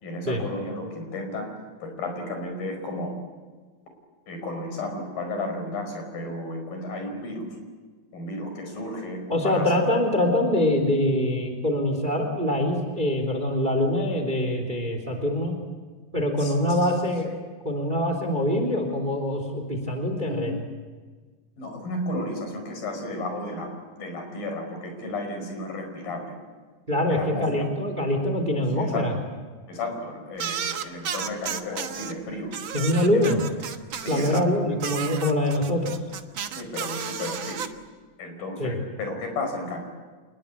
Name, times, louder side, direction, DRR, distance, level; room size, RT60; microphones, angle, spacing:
voice 1, 0.0-1.5 1.8-3.2 4.3-7.6 8.1-9.7 16.4-16.9 17.3-17.4 20.2-20.6 21.6-23.7 24.0-26.4 27.1-27.5 28.8-29.2 29.7-32.5 33.1-33.4 33.9-34.6 36.5-37.6 38.2-39.8, left 2 dB, 70° left, 4 dB, 6.9 m, -33 dB
voice 2, 9.3-15.5 16.1-17.3 17.6-20.6 26.9-29.1 32.7-33.4 34.1-35.9 38.6-38.8, left 1 dB, 15° right, 5 dB, 3.0 m, -24 dB
sound 1, 30.4-32.1 32.5-34.4 34.8-37.7, right 7 dB, 85° right, 1.0 m, -33 dB
27.5 x 20.5 x 8.7 m, 1.4 s
omnidirectional pair, 4.2 m